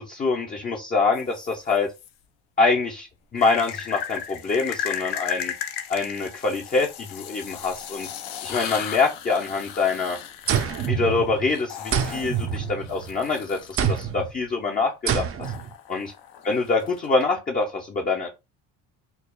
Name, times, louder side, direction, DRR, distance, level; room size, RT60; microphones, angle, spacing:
voice 1, 0.0-1.9 2.6-3.1 3.3-5.5 5.9-8.1 8.4-10.2 10.9-15.2 15.9-16.1 16.4-18.3, left 4 dB, 20° left, 1 dB, 0.5 m, -25 dB
sound 1, 1.1-2.1 3.4-14.0 15.4-17.2, left 9 dB, 75° left, 0.7 m, -36 dB
sound 2, 10.5-11.5 11.9-13.2 13.8-14.3 15.1-15.7, right 8 dB, 35° right, 0.5 m, -26 dB
4.6 x 2.3 x 2.2 m, 0.25 s
cardioid pair, 115°, 39 cm